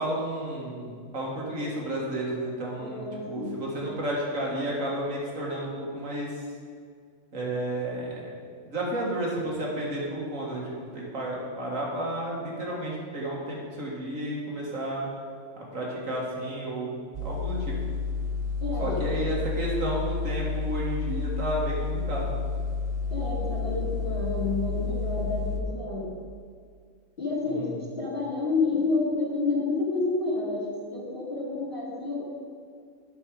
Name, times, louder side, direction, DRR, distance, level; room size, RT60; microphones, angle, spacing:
voice 1, 0.0-6.4 7.3-8.3 8.6-15.1 15.7-17.0 17.2-17.8 18.8-22.3, right 1 dB, 85° right, -3 dB, 2.2 m, -32 dB
voice 2, 2.8-3.6 18.6-19.1 23.1-26.1 27.2-32.3, left 3 dB, 45° left, -6 dB, 2.6 m, -29 dB
sound 1, 17.1-25.6, left 4 dB, 40° right, 0.9 m, -30 dB
9.7 x 6.1 x 5.0 m, 2.1 s
omnidirectional pair, 1.3 m